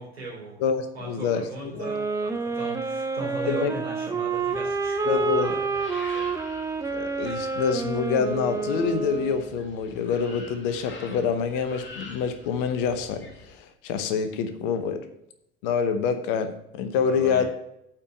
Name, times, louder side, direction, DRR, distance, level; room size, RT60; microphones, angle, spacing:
voice 1, 0.0-0.6 0.9-6.3 17.0-17.5, right 2 dB, 80° right, -3 dB, 3.1 m, -38 dB
voice 2, 0.6-1.9 3.5-3.8 5.1-5.6 6.9-15.1 15.6-17.4, left 6 dB, 55° left, 10 dB, 1.0 m, -26 dB
sound 1, 1.7-9.6, right 4 dB, 10° right, 0.8 m, -28 dB
sound 2, 4.3-13.5, left 3 dB, 35° left, 2.1 m, -46 dB
8.7 x 4.6 x 6.8 m, 0.80 s
figure-of-eight pair, 70°, 30 cm